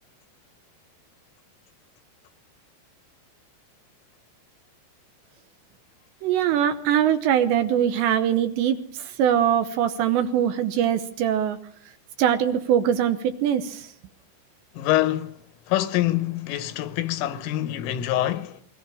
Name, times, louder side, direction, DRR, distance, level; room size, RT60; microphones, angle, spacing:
voice 1, 6.2-11.6 12.2-13.9, right 9 dB, 75° right, 3.0 m, -22 dB
voice 2, 14.8-15.4 15.7-18.6, left 14 dB, 90° left, 3.7 m, -25 dB
27.5 x 22.5 x 5.0 m
omnidirectional pair, 5.7 m